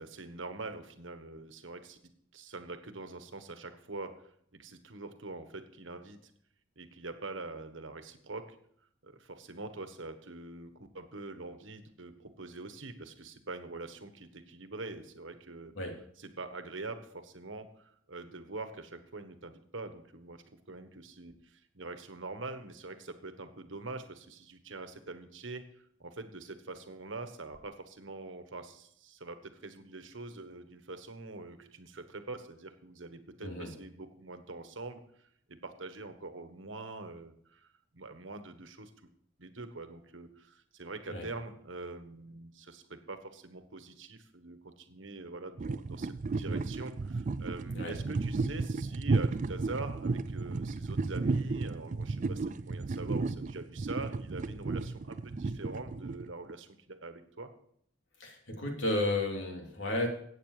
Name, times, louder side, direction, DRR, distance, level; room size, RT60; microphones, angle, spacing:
voice 1, 0.0-2.0 2.3-4.1 4.5-6.3 6.8-8.5 9.0-15.7 16.2-25.6 26.0-35.0 35.5-37.7 37.9-38.9 39.4-57.5, right 3 dB, 85° right, 8 dB, 1.5 m, -44 dB
sound 1, 45.6-56.5, right 3 dB, 40° right, 0.4 m, -33 dB
voice 2, 58.2-60.1, left 2 dB, 70° left, 1 dB, 3.2 m, -33 dB
15.0 x 8.7 x 5.0 m, 0.67 s
head